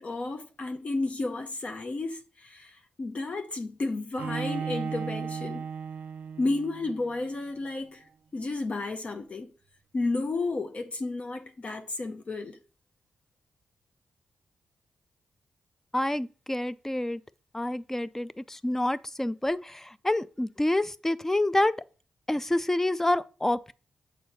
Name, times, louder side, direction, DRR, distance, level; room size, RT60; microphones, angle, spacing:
voice 1, 0.0-5.7 6.4-9.5 9.9-12.6, left 2 dB, 50° left, 0.7 m, -32 dB
Bowed string instrument, 4.2-7.1, right 6 dB, 70° right, 0.4 m, -35 dB
voice 2, 15.9-17.2 17.5-21.8 22.3-23.7, left 1 dB, 15° left, 0.4 m, -28 dB
6.9 x 4.3 x 4.1 m
cardioid pair, 65°, 3 cm